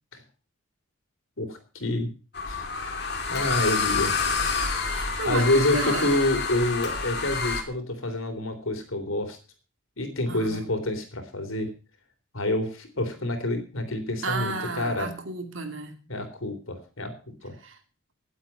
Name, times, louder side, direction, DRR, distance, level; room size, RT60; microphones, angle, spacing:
voice 1, 1.4-2.1 2.5-4.5 5.3-9.4 10.0-11.7 12.3-15.1 16.1-17.1 17.4-17.5, left 1 dB, 80° left, 6 dB, 3.7 m, -28 dB
sound 1, 2.3-7.6, left 4 dB, 50° left, 2.8 m, -28 dB
voice 2, 4.9-6.2 10.3-10.7 14.2-16.0 17.6-17.8, right 3 dB, 70° right, 6 dB, 2.7 m, -32 dB
18.5 x 8.1 x 5.8 m, 0.36 s
head